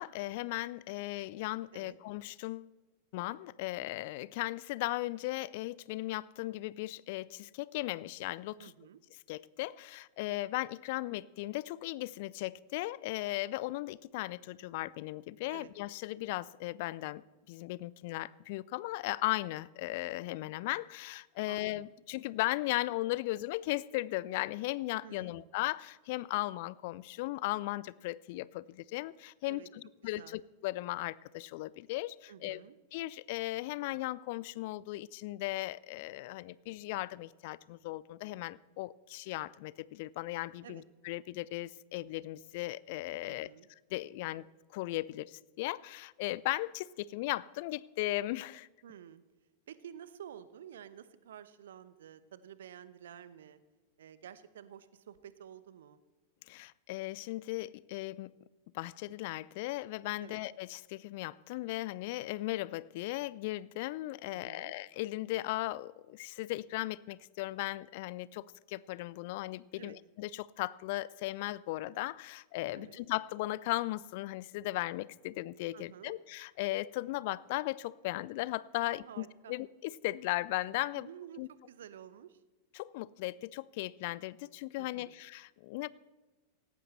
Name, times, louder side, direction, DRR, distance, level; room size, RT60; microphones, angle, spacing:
voice 1, 0.0-2.7 3.1-8.7 9.3-17.2 17.5-32.6 32.9-43.5 43.9-44.5 44.7-48.7 56.5-58.4 58.7-81.1 81.4-81.5 82.7-85.9, left 18 dB, 50° left, 22 dB, 0.4 m, -37 dB
voice 2, 8.6-9.0 15.5-15.7 21.5-22.0 25.0-25.5 29.5-29.7 30.2-30.4 32.3-32.8 40.6-40.8 43.3-43.7 48.8-49.2 49.7-53.6 54.0-56.0 60.2-60.4 64.3-64.7 69.8-70.0 72.7-73.0 75.7-76.2 78.8-79.5 80.9-81.4 81.7-82.4 84.8-85.2, right 9 dB, 60° right, 15 dB, 0.9 m, -51 dB
17.5 x 17.0 x 3.2 m, 1.2 s
figure-of-eight pair, 90°, 0 cm